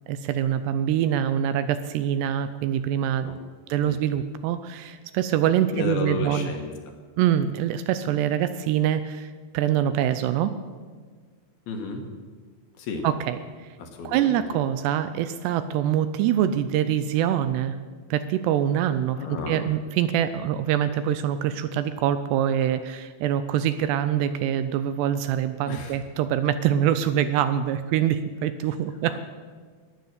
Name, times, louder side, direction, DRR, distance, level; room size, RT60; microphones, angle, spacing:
voice 1, 0.1-3.3 3.7-6.5 7.2-10.5 13.0-13.4 14.0-17.8 18.1-19.2 19.5-29.1, right 10 dB, 80° right, 11 dB, 2.6 m, -24 dB
voice 2, 5.7-6.7 11.7-12.0 12.8-13.1 13.8-14.4 19.2-19.7 25.7-26.0 29.1-29.2, left 3 dB, 65° left, 3 dB, 3.0 m, -32 dB
16.0 x 10.5 x 6.6 m, 1.5 s
omnidirectional pair, 5.1 m